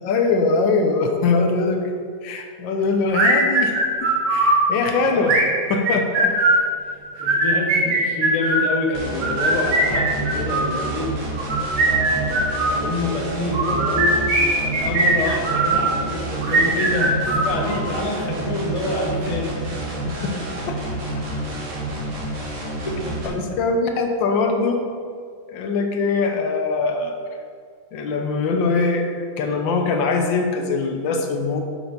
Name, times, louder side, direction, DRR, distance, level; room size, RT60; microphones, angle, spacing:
voice 1, 0.0-1.9 2.2-3.7 4.0-5.3 5.7-6.3 20.1-20.3 20.7-20.8 23.4-24.8 25.5-27.1 27.9-31.6, left 4 dB, 75° left, 4 dB, 1.3 m, -22 dB
sound 1, 3.1-4.7 5.2-6.7 7.2-8.7 9.2-10.8 11.4-12.8 13.5-15.8 16.4-17.9, right 2 dB, 70° right, 1.9 m, -20 dB
voice 2, 7.2-11.1 11.9-14.2 14.6-19.6 22.8-23.6, left 1 dB, 35° left, -1 dB, 0.5 m, -27 dB
sound 2, 8.9-23.3, right 1 dB, 45° right, 1.2 m, -29 dB
6.7 x 6.1 x 3.9 m, 2.2 s
omnidirectional pair, 2.2 m